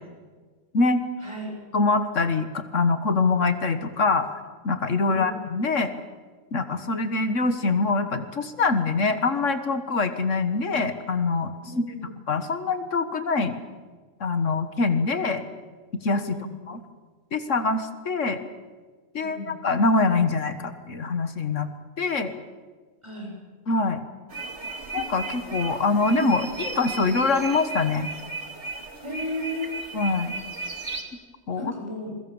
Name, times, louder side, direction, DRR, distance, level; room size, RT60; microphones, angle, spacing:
voice 1, 1.2-1.5 5.1-5.4 11.6-12.2 16.2-16.5 19.2-19.5 23.0-23.3 29.0-29.7 31.5-32.1, left 1 dB, 20° right, 0 dB, 6.8 m, -34 dB
voice 2, 1.7-4.3 4.6-5.9 6.5-11.5 11.8-11.9 12.3-13.6 14.2-15.4 16.0-16.4 16.7-16.8 17.3-18.4 19.1-21.7 22.0-22.3 23.7-24.0 24.9-28.1 29.9-30.3 31.5-31.7, left 3 dB, 70° left, 9 dB, 1.8 m, -24 dB
sound 1, 24.3-31.0, right 3 dB, 60° right, 2.8 m, -34 dB
28.5 x 22.0 x 7.2 m, 1.4 s
omnidirectional pair, 1.3 m